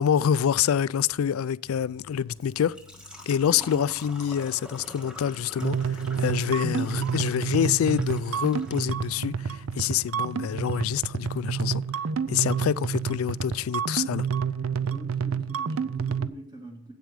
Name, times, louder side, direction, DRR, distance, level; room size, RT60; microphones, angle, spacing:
voice 1, 0.0-2.8 3.3-11.8 12.3-14.3, left 8 dB, 90° left, 0.3 m, -26 dB
sound 1, 1.6-11.8, left 4 dB, 70° left, 0.9 m, -54 dB
Engine / Trickle dribble / Fill (with liquid), 1.7-13.6, left 1 dB, 5° right, 1.4 m, -48 dB
voice 2, 3.4-3.9 14.9-16.9, equal, 20° right, 2.0 m, -43 dB
sound 2, 5.6-16.3, right 6 dB, 75° right, 0.5 m, -29 dB
9.2 x 8.5 x 5.1 m
head